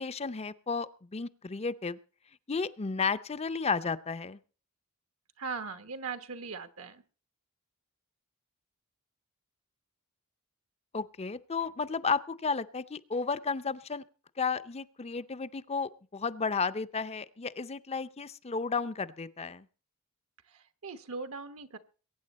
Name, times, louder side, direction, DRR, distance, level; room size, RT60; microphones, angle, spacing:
voice 1, 0.0-2.0 2.5-4.4 10.9-14.0 14.4-19.7, left 5 dB, 30° left, 14 dB, 0.6 m, -33 dB
voice 2, 5.4-7.0 20.5-21.8, right 4 dB, 65° right, 9 dB, 1.1 m, -39 dB
22.5 x 9.1 x 4.2 m, 0.38 s
head